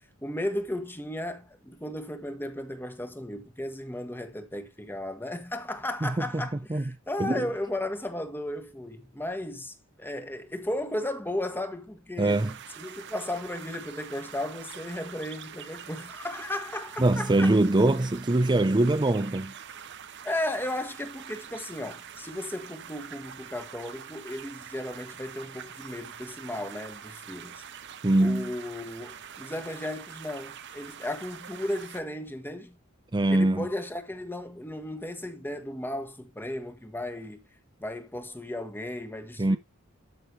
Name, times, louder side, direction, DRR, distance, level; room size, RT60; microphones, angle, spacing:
voice 1, 0.2-12.4 12.8-17.6 20.2-27.6 28.2-32.8 33.3-37.4 37.8-39.6, left 1 dB, 10° left, 1.4 m, -35 dB
voice 2, 12.2-12.5 17.0-19.5 28.0-28.5 33.1-33.7 39.4-39.6, right 2 dB, 20° right, 0.6 m, -23 dB
sound 1, 12.3-32.0, right 8 dB, 60° right, 1.0 m, -45 dB
12.5 x 6.1 x 2.8 m
head